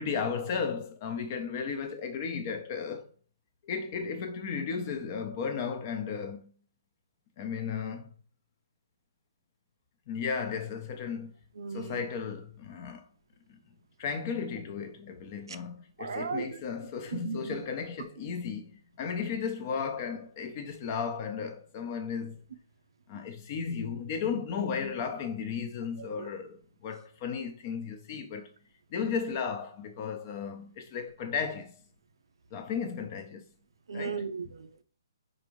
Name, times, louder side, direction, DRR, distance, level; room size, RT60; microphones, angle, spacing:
voice 1, 0.0-3.1 3.6-6.5 7.4-8.1 10.1-11.3 11.7-13.0 13.5-13.6 14.0-22.4 23.1-28.5 28.9-31.7 32.5-33.4 33.9-34.2, left 6 dB, 35° left, 0.7 m, -34 dB
voice 2, 11.6-12.0 16.0-16.6 17.1-17.6 26.1-26.3 33.9-34.8, right 5 dB, 75° right, 0.5 m, -36 dB
4.7 x 2.6 x 3.1 m
hypercardioid pair, 150°, 2 cm